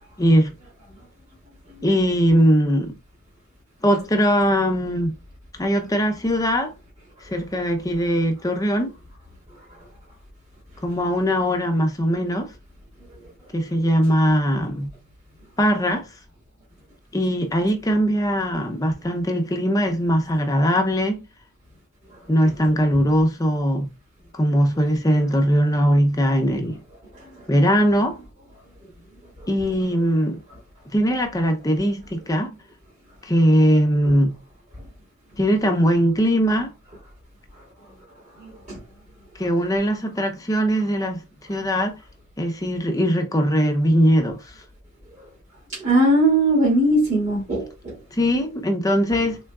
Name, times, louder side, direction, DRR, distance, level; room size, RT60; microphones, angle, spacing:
voice 1, 0.2-0.5 1.8-2.9 3.8-5.1 5.6-6.7 7.2-8.9 10.8-12.5 13.5-14.9 15.6-16.1 17.1-21.2 22.3-23.9 24.3-26.8 27.5-28.2 29.5-30.4 30.9-32.6 33.2-34.3 35.4-36.7 39.3-41.2 41.5-42.0 42.4-44.5 48.1-49.4, equal, 15° left, 0.6 m, -20 dB
voice 2, 45.7-47.9, right 1 dB, 35° right, 1.8 m, -19 dB
3.8 x 3.5 x 2.3 m
head